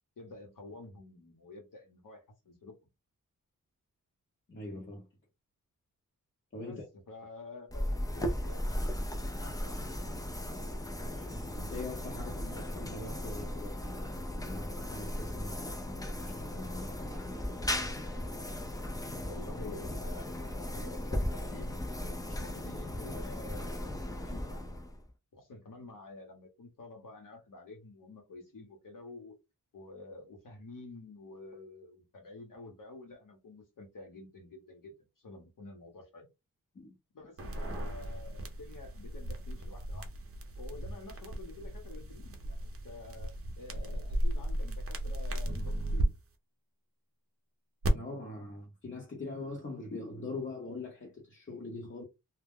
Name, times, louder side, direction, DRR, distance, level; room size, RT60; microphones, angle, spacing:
voice 1, 0.2-2.8 6.6-9.8 19.2-23.9 24.2-24.6 25.3-29.4 29.7-36.3 37.1-40.1 40.6-46.1, left 2 dB, 65° left, 1.0 m, -49 dB
voice 2, 4.5-5.1 6.5-6.8 11.0-14.0 14.4-17.5 36.7-36.9 47.9-52.0, left 2 dB, 35° left, 0.8 m, -43 dB
sound 1, 7.7-25.1, left 1 dB, 10° left, 0.4 m, -37 dB
sound 2, 37.4-46.1 47.8-47.9, right 1 dB, 40° right, 0.6 m, -36 dB
2.2 x 2.1 x 3.6 m
wide cardioid pair, 120°, 35 cm